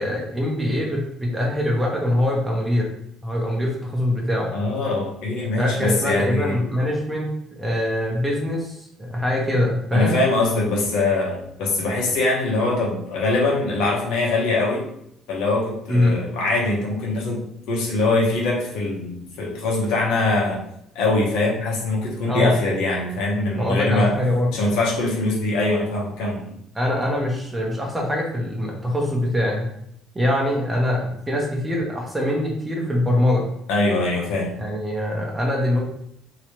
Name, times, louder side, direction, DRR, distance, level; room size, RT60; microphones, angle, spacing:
voice 1, 0.0-2.9 3.2-4.5 5.6-10.2 15.9-16.2 22.3-22.6 23.5-24.5 26.7-29.7 30.1-33.5 34.6-35.8, left 1 dB, 10° right, -1 dB, 0.9 m, -23 dB
voice 2, 4.5-6.6 9.9-14.8 15.3-17.4 17.7-20.6 20.9-24.1 24.5-26.4 33.7-34.5, left 2 dB, 85° left, -3 dB, 1.0 m, -22 dB
3.1 x 3.0 x 3.0 m, 0.75 s
cardioid pair, 120°, 0 cm